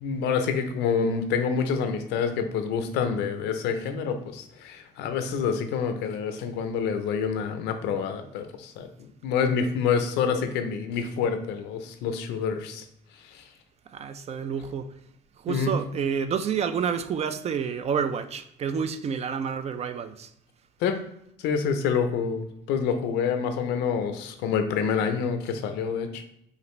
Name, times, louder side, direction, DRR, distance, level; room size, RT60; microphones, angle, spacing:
voice 1, 0.0-8.9 9.2-12.8 13.3-13.4 15.5-15.7 20.8-21.0 21.4-26.2, left 6 dB, 90° left, 0.5 m, -27 dB
voice 2, 13.9-14.9 15.4-20.3, right 7 dB, 40° right, 0.4 m, -29 dB
4.8 x 2.6 x 3.1 m
cardioid pair, 110°, 17 cm